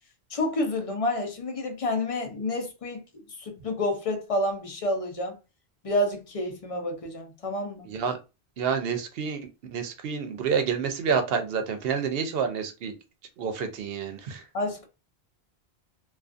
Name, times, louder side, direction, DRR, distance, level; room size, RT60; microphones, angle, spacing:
voice 1, 0.3-3.0 3.4-5.4 5.8-7.9 14.5-14.9, left 1 dB, 40° left, 0.6 m, -29 dB
voice 2, 8.6-9.4 9.7-12.9 13.4-14.4, right 6 dB, 70° right, 0.7 m, -28 dB
2.4 x 2.3 x 2.4 m
omnidirectional pair, 1.0 m